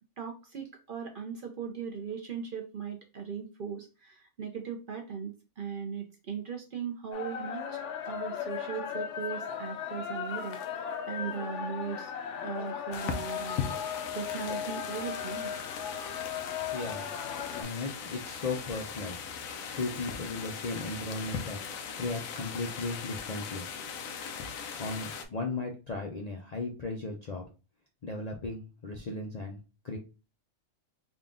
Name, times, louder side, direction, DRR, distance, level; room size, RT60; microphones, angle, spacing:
voice 1, 0.2-12.1 12.4-13.7 14.1-15.5, right 6 dB, 50° right, 3 dB, 0.7 m, -39 dB
sound 1, 7.1-17.6, left 8 dB, 70° left, 0.9 m, -37 dB
sound 2, 12.9-25.2, left 6 dB, 90° left, 1.0 m, -39 dB
voice 2, 16.7-17.1 17.6-19.2 19.7-23.6 24.8-27.5 28.0-29.6 29.8-30.0, left 3 dB, 50° left, 0 dB, 0.5 m, -36 dB
3.7 x 2.3 x 3.6 m, 0.31 s
omnidirectional pair, 1.4 m